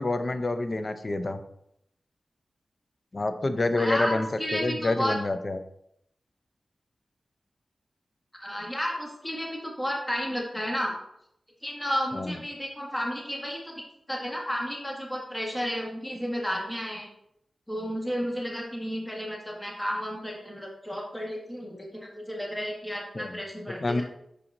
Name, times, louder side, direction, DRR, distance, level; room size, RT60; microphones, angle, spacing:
voice 1, 0.0-1.4 3.1-4.3 4.5-5.6 12.1-12.4 23.2-23.3 23.8-24.0, left 2 dB, 50° left, 9 dB, 0.6 m, -27 dB
voice 2, 3.8-5.2 8.4-11.0 11.6-13.8 14.1-17.1 17.7-24.0, equal, 10° left, -2 dB, 1.5 m, -32 dB
6.2 x 5.7 x 2.7 m, 0.75 s
cardioid pair, 50°, 0 cm